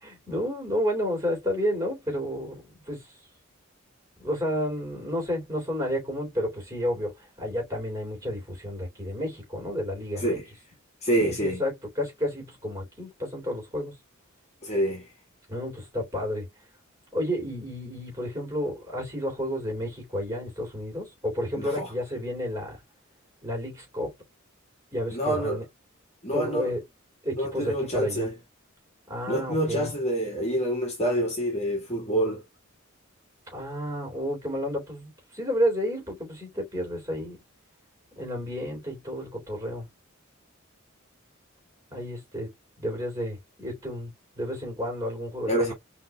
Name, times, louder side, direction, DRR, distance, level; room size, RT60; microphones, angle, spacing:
voice 1, 0.0-3.1 4.2-10.4 11.2-14.0 15.5-16.5 17.1-22.8 23.4-24.1 24.9-25.6 26.3-26.8 27.2-28.3 29.1-29.9 33.5-37.4 38.1-39.9 41.9-42.5 42.8-45.7, equal, 15° right, 3.3 m, -31 dB
voice 2, 11.0-11.6 14.6-15.1 21.5-21.9 25.1-25.6 26.2-26.7 27.3-28.3 29.3-32.4 45.5-45.7, right 1 dB, 30° left, 1.5 m, -27 dB
5.5 x 3.1 x 2.3 m
head